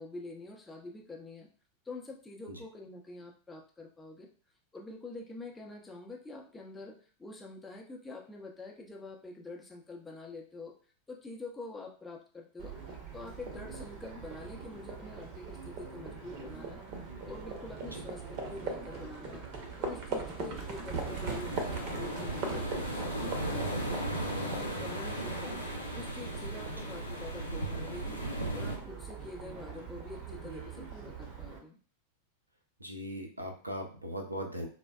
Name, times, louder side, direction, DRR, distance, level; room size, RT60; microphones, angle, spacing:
voice 1, 0.0-1.5 1.8-4.3 4.7-10.8 11.1-24.1 24.4-25.6 25.9-28.2 28.5-31.8, left 2 dB, 10° left, 0 dB, 0.6 m, -46 dB
Livestock farm animals working animals, 12.6-31.6, right 4 dB, 40° right, 0.7 m, -41 dB
sound 1, 21.0-28.8, right 1 dB, 90° left, 0.7 m, -36 dB
voice 2, 32.8-34.7, equal, 85° right, 3 dB, 0.5 m, -39 dB
3.9 x 2.1 x 2.3 m, 0.41 s
figure-of-eight pair, 90°, 0 cm